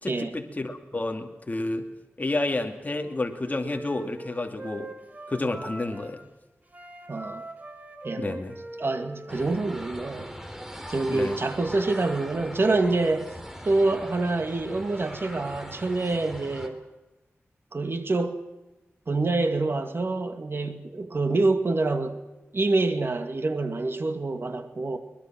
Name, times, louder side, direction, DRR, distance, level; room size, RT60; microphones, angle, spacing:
voice 1, 0.0-1.9 2.2-4.9 5.3-6.2 8.2-8.6 11.1-11.4, left 2 dB, 35° left, 2.5 m, -30 dB
Wind instrument woodwind instrument, 2.8-6.2 6.7-10.3, right 1 dB, 35° right, 4.9 m, -42 dB
voice 2, 7.1-7.4 8.0-8.4 8.8-10.3 10.9-13.3 13.6-16.8 17.7-18.4 19.1-22.2 22.5-25.0, right 2 dB, 50° right, 2.2 m, -26 dB
sound 1, 9.3-16.7, equal, 10° right, 3.5 m, -41 dB
23.5 x 20.5 x 6.1 m
wide cardioid pair, 80°, 5 cm